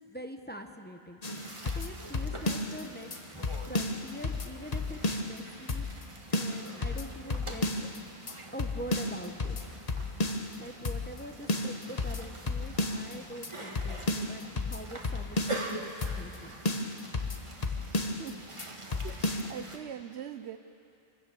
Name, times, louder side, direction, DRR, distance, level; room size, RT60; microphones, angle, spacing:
voice 1, 0.1-1.2 1.6-5.9 6.3-7.7 8.5-9.6 10.6-16.6, equal, 10° left, 4 dB, 1.1 m, -44 dB
sound 1, 1.2-2.8 3.1-3.2 3.4-5.4 5.7-6.1 6.3-8.0 8.3-8.4 8.6-10.6 10.8-11.2 11.5-13.1 13.4-13.5 13.7-15.7 16.0-16.4 16.6-18.3 18.6-18.7 18.9-19.5, left 2 dB, 35° left, 1.2 m, -33 dB
sound 2, 1.2-19.8, right 1 dB, 30° right, 1.6 m, -45 dB
voice 2, 17.7-18.5 19.0-20.6, right 9 dB, 75° right, 12 dB, 1.0 m, -43 dB
25.0 x 14.0 x 8.5 m, 2.7 s
omnidirectional pair, 1.1 m